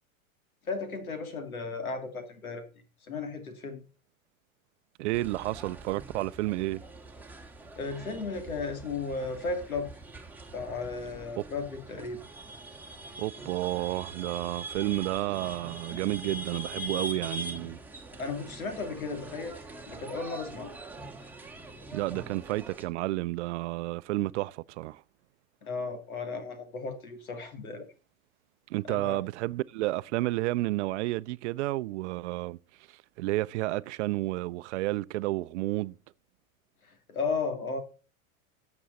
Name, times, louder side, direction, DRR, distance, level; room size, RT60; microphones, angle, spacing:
voice 1, 0.6-2.6 3.0-3.8 7.8-9.9 10.5-12.2 18.1-19.6 19.9-20.7 25.6-27.9 28.8-29.2 36.8-37.8, left 4 dB, 85° left, 2.6 m, -35 dB
voice 2, 5.0-6.8 11.4-11.5 13.2-17.8 21.9-25.0 28.7-32.6 32.9-36.0, right 18 dB, 55° right, 0.6 m, -31 dB
sound 1, 5.1-22.9, right 2 dB, 5° right, 1.8 m, -43 dB
13.0 x 7.1 x 4.1 m
hypercardioid pair, 100°, 42 cm